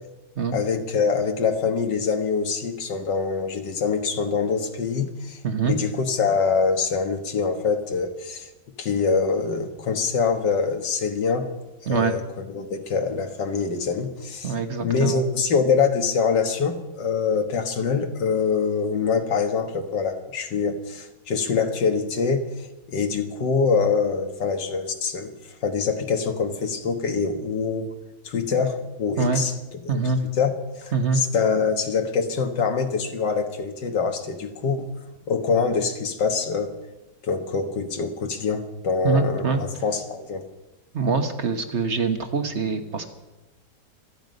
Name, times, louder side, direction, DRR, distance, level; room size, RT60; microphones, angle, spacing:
voice 1, 0.5-5.4 5.6-8.5 8.8-11.5 11.9-14.5 14.8-22.5 22.9-25.3 25.6-27.9 28.2-29.5 29.8-30.0 30.4-34.9 35.3-36.7 37.2-40.4, left 5 dB, 90° left, 6 dB, 2.1 m, -24 dB
voice 2, 5.4-5.8 11.9-12.2 14.4-15.2 29.2-29.4 29.9-30.2 30.9-31.2 39.0-39.6 40.9-43.1, right 4 dB, 45° right, 7 dB, 1.4 m, -24 dB
26.5 x 9.4 x 5.3 m, 1.0 s
omnidirectional pair, 1.8 m